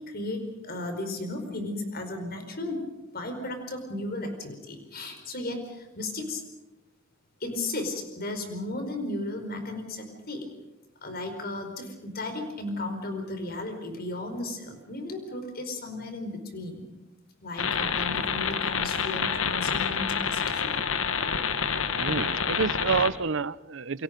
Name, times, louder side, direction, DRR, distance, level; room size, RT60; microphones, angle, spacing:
voice 1, 0.0-2.8 3.1-6.4 7.4-10.5 11.0-16.9 17.4-20.7, left 2 dB, 50° left, 6 dB, 4.9 m, -35 dB
sound 1, 17.6-23.1, left 6 dB, 85° left, 1.4 m, -28 dB
voice 2, 21.9-24.0, right 5 dB, 65° right, 18 dB, 0.7 m, -28 dB
29.5 x 23.0 x 5.3 m, 1.0 s
head